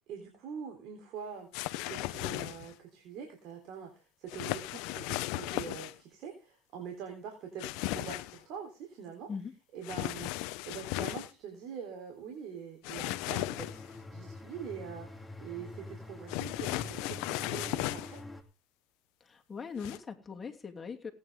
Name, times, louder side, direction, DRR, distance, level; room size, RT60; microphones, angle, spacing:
voice 1, 0.1-1.5 1.9-9.3 9.7-18.2, right 7 dB, 60° right, 2 dB, 3.7 m, -44 dB
sound 1, 1.5-2.7 4.3-6.0 7.6-8.4 9.8-11.3 12.8-14.0 16.3-18.2 19.8-20.0, left 18 dB, 75° left, 0.8 m, -36 dB
sound 2, 13.4-18.4, left 2 dB, 5° left, 2.8 m, -46 dB
voice 2, 19.2-21.1, left 5 dB, 25° left, 4 dB, 2.9 m, -41 dB
18.5 x 9.6 x 3.7 m, 0.30 s
supercardioid pair, 95°, 0 cm